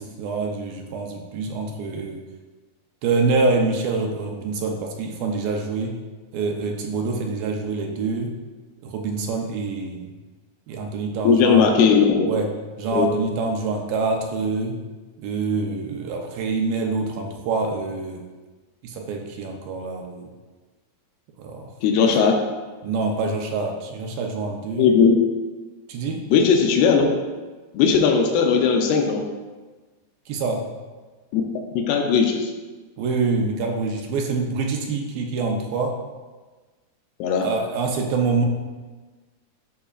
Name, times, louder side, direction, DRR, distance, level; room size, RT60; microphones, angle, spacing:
voice 1, 0.0-2.2 3.0-6.0 6.3-8.4 8.8-10.0 10.7-11.7 12.3-12.5 12.8-14.8 15.2-18.2 18.8-20.3 21.4-21.7 22.0-22.1 22.8-24.9 25.9-26.2 30.3-30.7 33.0-35.9 37.4-38.5, right 3 dB, 75° right, 2 dB, 2.3 m, -26 dB
voice 2, 11.2-12.3 12.9-13.1 21.8-22.4 24.8-25.1 26.3-27.1 27.7-29.2 31.3-31.4 31.8-32.5 37.2-37.5, left 6 dB, 90° left, 2 dB, 2.8 m, -18 dB
14.0 x 5.7 x 2.4 m, 1.3 s
omnidirectional pair, 4.5 m